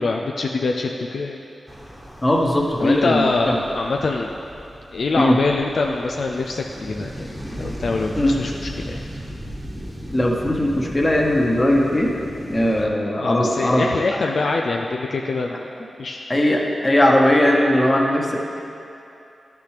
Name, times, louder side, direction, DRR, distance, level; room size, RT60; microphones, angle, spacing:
voice 1, 0.0-1.4 2.8-4.3 4.9-9.0 12.8-15.6 16.0-16.3, left 3 dB, 70° left, 1 dB, 0.4 m, -24 dB
sound 1, 1.7-12.9, equal, 5° right, 1.3 m, -36 dB
voice 2, 2.2-3.6 5.2-5.4 8.2-8.4 10.1-12.1 12.5-14.5 16.3-18.4, left 1 dB, 30° left, -1 dB, 1.3 m, -19 dB
11.0 x 6.8 x 3.3 m, 2.7 s
cardioid pair, 45°, 0 cm